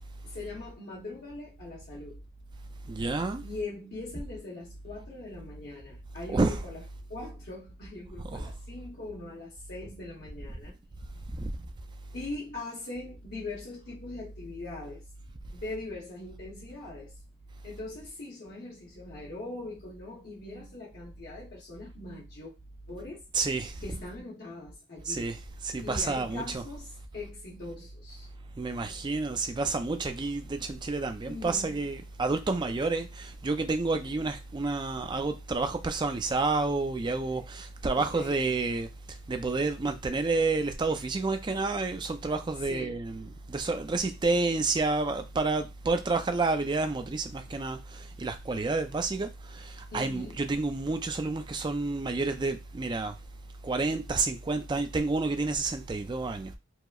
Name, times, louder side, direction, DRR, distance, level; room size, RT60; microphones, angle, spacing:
voice 1, 0.2-2.2 3.4-6.8 7.1-10.7 12.1-15.0 15.5-17.2 17.6-22.5 22.9-23.2 23.8-25.3 25.8-28.3 31.3-31.8 37.9-38.4 42.7-43.0 49.9-50.4, left 2 dB, 50° left, 0.8 m, -41 dB
voice 2, 2.9-3.4 6.3-6.6 8.2-8.5 11.4-11.5 23.3-23.8 25.1-26.7 28.6-38.9 39.3-53.1 53.6-56.5, right 3 dB, 20° right, 0.3 m, -30 dB
4.6 x 2.0 x 2.3 m
head